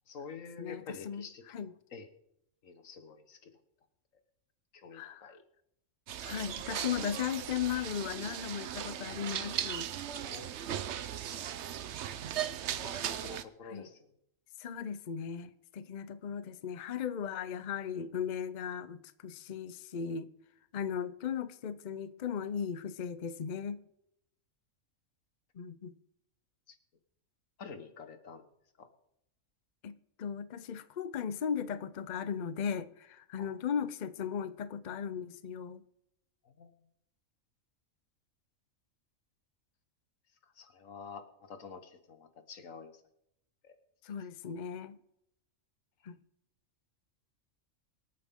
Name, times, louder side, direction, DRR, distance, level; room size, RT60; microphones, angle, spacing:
voice 1, 0.1-1.4 1.9-2.1 2.6-3.5 4.7-5.4 10.2-10.5 12.8-14.1 27.6-28.4 28.8-28.9 33.4-33.5 36.4-36.7 40.6-42.9 43.6-43.7, left 5 dB, 80° left, 1.7 m, -48 dB
voice 2, 0.6-1.7 4.9-5.4 6.2-9.9 13.6-13.9 14.6-20.3 20.7-23.8 25.5-25.9 29.8-35.8 44.0-45.0 46.0-46.2, left 7 dB, 45° left, 0.6 m, -37 dB
sound 1, 6.1-13.4, right 10 dB, 65° right, 0.9 m, -38 dB
24.5 x 8.8 x 3.7 m
omnidirectional pair, 1.4 m